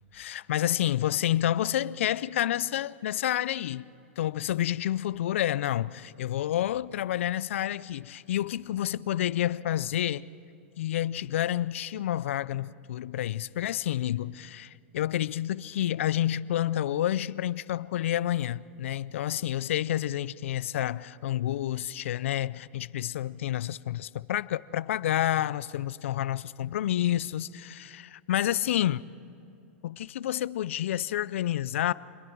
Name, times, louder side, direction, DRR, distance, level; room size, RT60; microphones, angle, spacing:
voice 1, 0.1-3.9 4.2-10.3 10.8-29.0 29.8-31.9, left 12 dB, 75° left, 0.5 m, -29 dB
27.0 x 22.0 x 4.7 m
hypercardioid pair, 115°, 7 cm